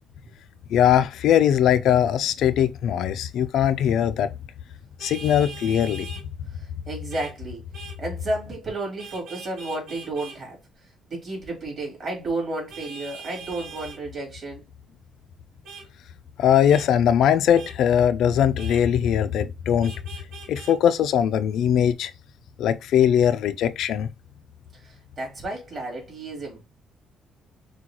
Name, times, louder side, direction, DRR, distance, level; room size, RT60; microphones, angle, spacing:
voice 1, 0.7-4.3 5.0-6.1 16.4-19.9 20.5-22.1 22.6-24.1, left 9 dB, 70° left, 0.3 m, -20 dB
Vehicle horn car horn honking, 5.0-6.2 7.1-7.3 7.7-8.0 9.0-10.4 12.7-14.0 15.6-15.8 16.7-16.9 17.5-17.7 18.6-18.8 19.8-20.7, right 4 dB, 65° right, 2.0 m, -41 dB
voice 2, 6.5-7.7 8.0-14.6 24.7-26.6, right 2 dB, 35° right, 2.6 m, -32 dB
6.1 x 2.3 x 2.9 m
cardioid pair, 150°, 0 cm